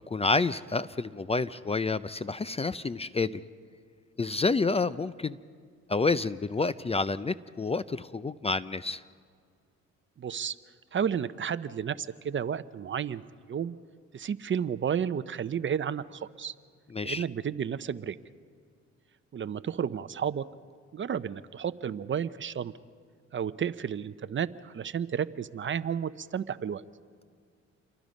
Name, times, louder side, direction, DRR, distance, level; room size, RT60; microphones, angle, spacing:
voice 1, 0.1-3.4 4.2-5.4 5.9-9.0 16.9-17.2, left 3 dB, 20° left, 15 dB, 0.5 m, -29 dB
voice 2, 10.2-10.6 10.9-13.2 13.5-13.8 14.1-16.5 17.0-18.2 19.3-20.5 20.9-22.7 23.3-26.8, right 8 dB, 40° right, 14 dB, 0.7 m, -32 dB
28.0 x 22.5 x 5.3 m, 2.1 s
cardioid pair, 90°, 30 cm